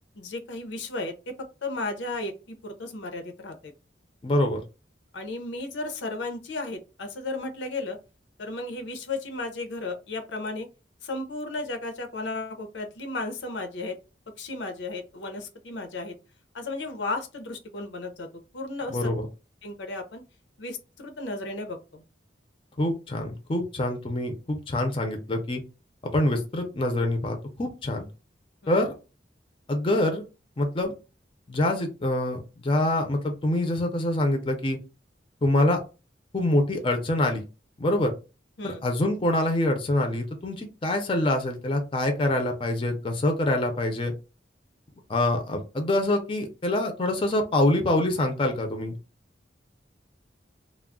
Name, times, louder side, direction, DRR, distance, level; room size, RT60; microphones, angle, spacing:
voice 1, 0.2-1.4 1.6-3.7 5.1-8.0 8.4-10.7 11.0-14.0 14.4-16.1 16.5-18.3 18.5-19.1 19.6-20.2 20.6-22.0 28.6-28.8 38.6-38.8, left 2 dB, 90° left, 0.6 m, -34 dB
voice 2, 4.2-4.6 18.9-19.3 22.8-25.6 26.0-28.1 28.7-28.9 29.7-30.2 30.6-30.9 31.5-34.8 35.4-35.8 36.3-37.4 37.8-38.1 38.6-44.1 45.1-49.0, left 1 dB, 30° left, 0.5 m, -25 dB
2.3 x 2.0 x 3.6 m
head